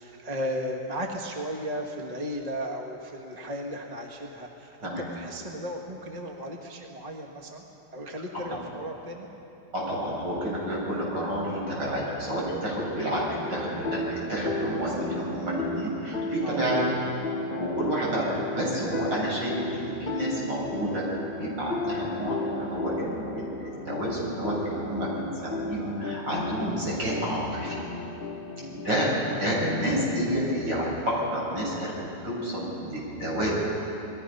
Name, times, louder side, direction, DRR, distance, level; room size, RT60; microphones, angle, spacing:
voice 1, 0.0-7.6 7.9-9.3 16.4-16.6 28.6-28.8, equal, 20° right, 1 dB, 1.6 m, -35 dB
voice 2, 9.7-17.0 17.6-21.0 21.4-27.8 28.7-31.9 32.2-33.5, equal, 75° right, -5 dB, 7.4 m, -29 dB
sound 1, 13.4-30.9, left 2 dB, 35° left, 1.0 m, -35 dB
29.5 x 21.0 x 5.6 m, 2.9 s
omnidirectional pair, 2.0 m